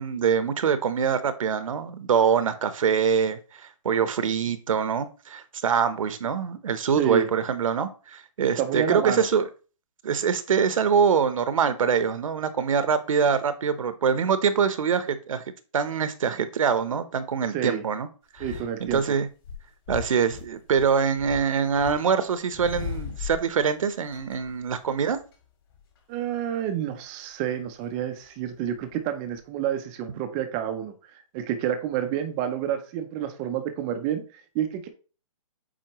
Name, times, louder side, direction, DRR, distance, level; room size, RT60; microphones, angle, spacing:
voice 1, 0.0-9.5 10.0-15.4 15.7-18.1 18.3-18.4 18.8-19.3 19.9-25.2, right 6 dB, 70° right, 0.8 m, -24 dB
voice 2, 7.0-7.3 8.4-9.3 17.5-17.8 18.4-19.0 26.1-30.9 31.3-34.2 34.5-34.9, right 9 dB, 15° right, 0.4 m, -29 dB
sound 1, 18.4-19.0 19.4-22.0 22.2-23.7 24.1-25.3 25.7-26.0 27.7-28.9 29.3-29.4, left 7 dB, 40° left, 2.0 m, -38 dB
7.6 x 4.2 x 3.0 m
hypercardioid pair, 165°, 18 cm